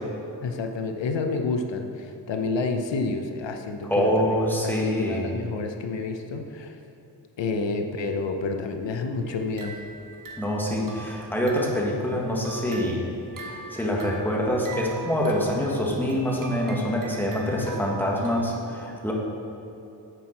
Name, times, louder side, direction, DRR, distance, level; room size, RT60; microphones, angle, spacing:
voice 1, 0.4-6.8 7.4-9.8 17.5-17.7, left 3 dB, 85° left, 5 dB, 0.8 m, -29 dB
voice 2, 3.9-5.2 10.4-13.0 13.4-19.1, equal, 5° left, -3 dB, 1.5 m, -25 dB
sound 1, 9.3-11.9 12.3-18.4, right 3 dB, 50° right, 1.3 m, -42 dB
9.9 x 7.7 x 4.3 m, 2.9 s
wide cardioid pair, 140°, 43 cm